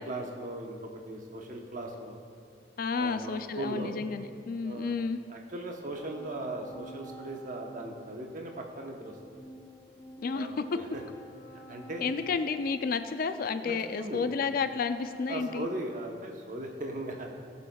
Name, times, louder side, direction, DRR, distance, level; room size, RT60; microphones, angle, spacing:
voice 1, 0.0-2.2 3.0-4.0 4.6-4.9 5.3-9.4 10.3-11.0 11.7-12.0 13.6-14.2 15.3-17.4, right 1 dB, 45° right, 2 dB, 1.0 m, -38 dB
voice 2, 2.8-5.2 10.2-10.8 12.0-15.7, left 5 dB, 50° left, 10 dB, 0.4 m, -31 dB
sound 1, 5.7-15.6, right 1 dB, 10° left, 1.1 m, -49 dB
17.0 x 6.9 x 2.3 m, 2.2 s
head